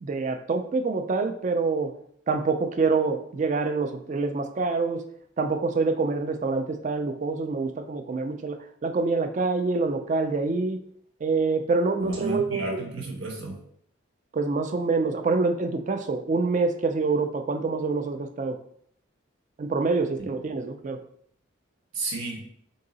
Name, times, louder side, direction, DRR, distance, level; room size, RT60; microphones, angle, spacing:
voice 1, 0.0-1.9 2.3-5.0 5.4-8.6 8.8-10.8 11.2-12.8 14.3-18.6 19.6-21.0, right 3 dB, 35° right, 7 dB, 0.3 m, -26 dB
voice 2, 12.0-13.6 21.9-22.4, right 2 dB, 75° right, -1 dB, 1.1 m, -32 dB
3.8 x 2.7 x 3.9 m, 0.67 s
head